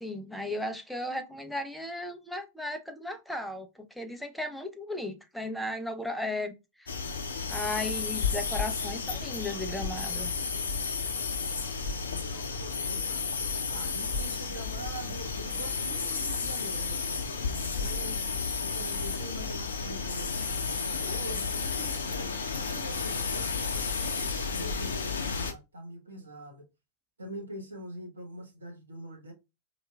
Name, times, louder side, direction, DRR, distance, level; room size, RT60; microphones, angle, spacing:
voice 1, 0.0-6.9 7.5-10.3, left 1 dB, ahead, 0.6 m, -35 dB
sound 1, 6.9-25.5, left 5 dB, 70° left, 0.5 m, -32 dB
voice 2, 11.9-13.3 13.7-18.2 18.6-23.9 24.5-26.6 27.2-29.3, right 2 dB, 75° right, 0.9 m, -44 dB
4.4 x 2.3 x 2.2 m
figure-of-eight pair, 90°, 0 cm